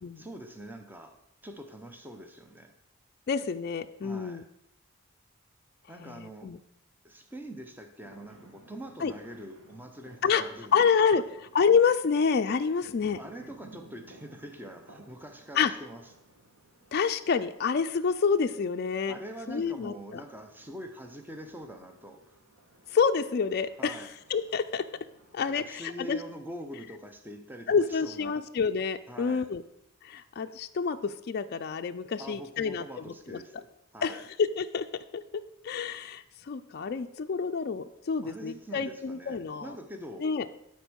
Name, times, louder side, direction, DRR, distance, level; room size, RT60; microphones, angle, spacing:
voice 1, 0.0-2.7 4.0-4.4 5.9-6.5 7.0-10.9 13.2-16.0 19.1-22.4 23.8-24.1 25.4-28.4 29.1-29.5 32.2-33.7 33.9-34.3 38.2-40.3, right 1 dB, 10° right, 6 dB, 0.7 m, -44 dB
voice 2, 3.3-4.4 6.0-6.6 9.0-9.1 10.2-10.4 10.7-11.2 11.5-13.2 15.5-15.7 16.9-19.2 19.5-20.2 22.9-24.8 25.3-26.2 27.7-29.6 30.0-32.8 33.3-33.4 34.0-34.9 35.1-35.2 35.6-39.8 40.2-40.5, left 6 dB, 45° left, 7 dB, 0.3 m, -28 dB
sound 1, 8.0-26.0, right 1 dB, 65° right, 2.0 m, -57 dB
11.5 x 4.4 x 6.2 m, 0.81 s
head